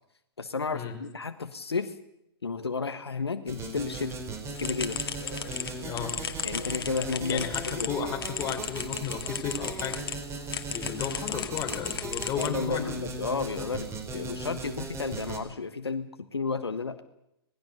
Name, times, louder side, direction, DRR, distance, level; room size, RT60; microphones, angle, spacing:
voice 1, 0.4-2.0 2.4-4.2 4.6-5.0 6.4-7.5 7.8-8.1 12.4-17.0, left 4 dB, 80° left, 10 dB, 1.4 m, -32 dB
sound 1, 3.5-15.4, right 3 dB, 20° right, 4.3 m, -38 dB
sound 2, 4.5-10.2 10.5-12.9, left 8 dB, 60° left, 2.3 m, -36 dB
voice 2, 5.8-6.1 7.3-10.0 10.7-12.9, left 7 dB, 25° left, 4 dB, 4.7 m, -34 dB
26.0 x 20.0 x 6.8 m, 0.83 s
figure-of-eight pair, 110°, 13 cm